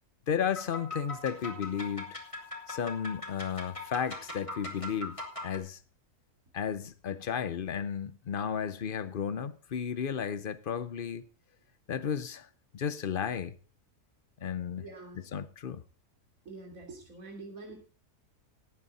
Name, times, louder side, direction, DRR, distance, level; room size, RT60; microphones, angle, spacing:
voice 1, 0.3-2.2 2.7-5.8 6.5-11.2 11.9-12.5 12.7-13.5 14.4-14.8 15.1-15.8, left 7 dB, 50° left, 0.7 m, -33 dB
sound 1, 0.6-5.6, left 2 dB, 20° left, 2.9 m, -41 dB
voice 2, 14.8-15.2 16.5-17.7, right 3 dB, 60° right, 3.4 m, -46 dB
18.5 x 8.5 x 4.1 m
omnidirectional pair, 1.6 m